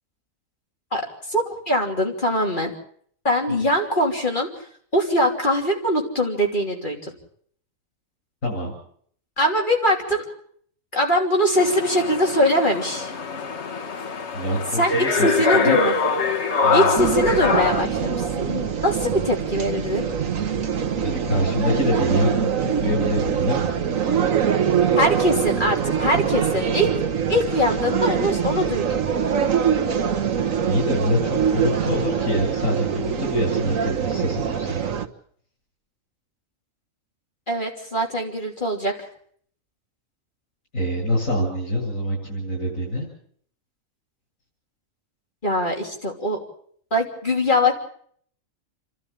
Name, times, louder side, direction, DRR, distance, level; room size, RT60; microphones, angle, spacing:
voice 1, 0.9-2.7 3.2-7.1 9.4-10.2 10.9-13.1 14.8-15.9 16.7-20.1 25.0-26.9 27.3-29.0 37.5-39.1 45.4-46.4 46.9-47.7, equal, 40° left, 1 dB, 3.2 m, -22 dB
voice 2, 8.4-8.8 14.3-15.8 16.6-17.5 21.0-23.7 30.4-35.1 40.7-43.1, equal, 85° left, -5 dB, 8.4 m, -26 dB
sound 1, 11.6-17.9, left 4 dB, 60° left, 1.6 m, -24 dB
sound 2, 17.0-35.1, right 7 dB, 85° right, 1.6 m, -24 dB
29.5 x 12.5 x 8.7 m, 0.62 s
omnidirectional pair, 1.4 m